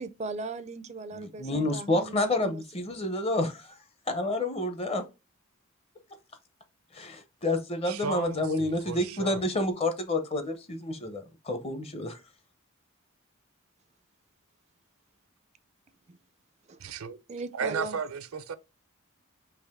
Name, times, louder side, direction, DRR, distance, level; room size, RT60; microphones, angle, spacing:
voice 1, 0.0-2.6 16.1-16.2 16.7-17.0 17.3-18.0, right 3 dB, 30° right, 0.4 m, -38 dB
voice 2, 1.1-3.7 4.1-5.0 6.9-12.2, left 2 dB, 30° left, 0.7 m, -29 dB
voice 3, 7.9-9.4 16.8-17.2 17.5-18.5, right 5 dB, 80° right, 0.5 m, -34 dB
4.8 x 2.9 x 3.5 m
head